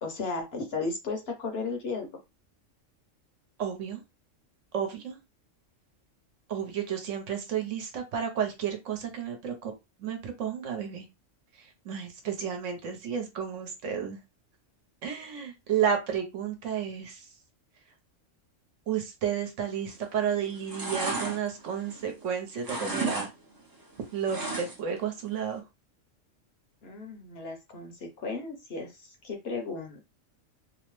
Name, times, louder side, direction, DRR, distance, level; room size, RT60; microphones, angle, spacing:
voice 1, 0.0-2.1 26.8-28.9 29.2-30.0, left 3 dB, 60° left, 3 dB, 0.8 m, -34 dB
voice 2, 3.6-4.0 4.7-5.2 6.5-9.7 10.0-11.1 11.6-14.2 15.0-17.2 18.9-23.3 24.1-25.6, right 8 dB, 70° right, 5 dB, 1.1 m, -32 dB
sound 1, 19.8-20.2 20.5-22.3 22.6-23.3 23.6-25.0 25.3-25.4, right 3 dB, 25° right, 0.4 m, -33 dB
2.8 x 2.0 x 3.0 m, 0.24 s
omnidirectional pair, 1.3 m